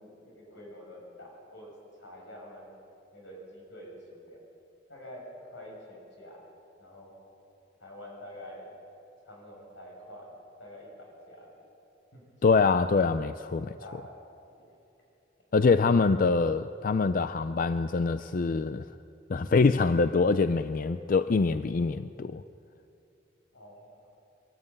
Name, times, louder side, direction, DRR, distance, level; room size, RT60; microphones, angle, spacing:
voice 1, 0.0-1.7 2.0-2.7 3.1-4.4 4.9-6.5 6.8-7.1 7.8-8.7 9.2-10.3 10.6-11.6 12.1-12.2 12.5-12.7 13.2-13.3 13.8-14.2 14.5-14.7 23.5-24.1, left 1 dB, 85° left, -2 dB, 6.7 m, -47 dB
voice 2, 12.4-13.7 15.5-18.8 19.3-22.4, left 4 dB, 45° left, 12 dB, 0.4 m, -24 dB
23.0 x 13.5 x 8.8 m, 2.8 s
head